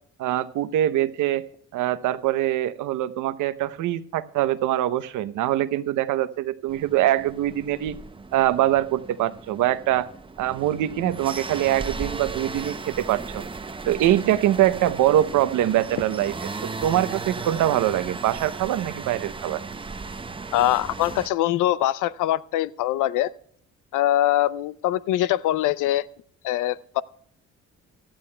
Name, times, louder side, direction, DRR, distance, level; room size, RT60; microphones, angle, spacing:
voice 1, 0.2-1.4 1.7-8.0 8.3-10.1 10.4-13.4 13.9-16.3 16.6-19.6, right 13 dB, 80° right, 15 dB, 0.7 m, -23 dB
sound 1, 6.7-21.3, right 4 dB, 15° right, 0.6 m, -36 dB
voice 2, 20.5-23.3 23.9-26.0 26.4-27.0, left 13 dB, 85° left, 19 dB, 0.5 m, -23 dB
17.0 x 12.5 x 2.2 m, 0.64 s
cardioid pair, 90°, 30 cm